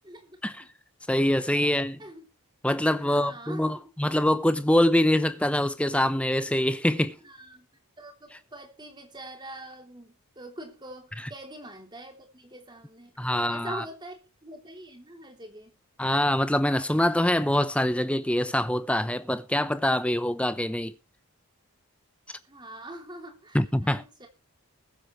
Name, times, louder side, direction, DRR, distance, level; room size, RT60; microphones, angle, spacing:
voice 1, 0.0-0.7 1.6-2.3 3.0-3.9 7.2-7.7 8.0-15.7 22.5-24.3, right 1 dB, 20° right, 3.1 m, -44 dB
voice 2, 1.1-2.0 2.6-7.2 13.2-13.8 16.0-20.9 23.5-24.0, left 1 dB, 5° left, 0.8 m, -24 dB
21.0 x 8.6 x 3.2 m
head